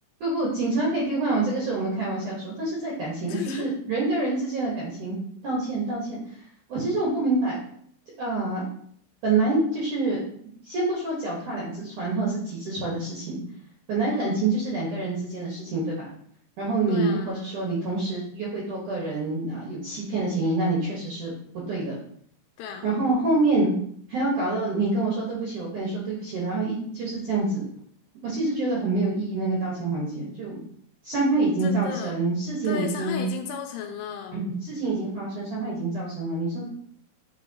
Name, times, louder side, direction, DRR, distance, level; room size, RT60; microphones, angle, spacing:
voice 1, 0.2-5.2 5.4-6.2 6.7-7.6 8.2-8.7 9.2-10.2 10.6-13.4 13.9-16.1 16.6-21.3 21.7-22.0 22.8-23.7 24.1-27.7 28.2-30.6 31.0-33.2 34.3-36.7, right 2 dB, 65° right, -4 dB, 1.9 m, -26 dB
voice 2, 3.2-3.7 14.1-14.5 16.9-17.7 22.6-23.0 31.6-32.3 32.6-34.4, left 7 dB, 80° left, 5 dB, 2.9 m, -35 dB
10.0 x 4.4 x 2.8 m, 0.62 s
omnidirectional pair, 5.8 m